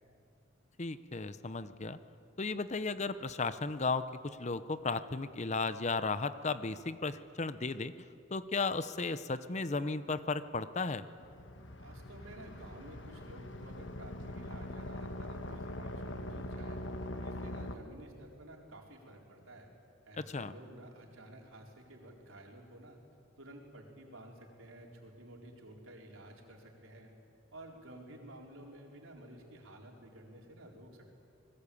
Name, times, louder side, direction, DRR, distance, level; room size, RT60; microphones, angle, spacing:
voice 1, 0.8-2.0 2.4-7.9 8.3-11.0 20.2-20.5, left 3 dB, 35° left, 13 dB, 0.7 m, -35 dB
sound 1, 11.2-17.8, left 1 dB, 60° left, 1.5 m, -42 dB
voice 2, 11.8-16.8 17.2-19.7 20.1-23.0 23.4-27.1 27.5-31.1, right 1 dB, 80° right, 0 dB, 4.3 m, -52 dB
25.5 x 20.5 x 8.6 m, 2.5 s
head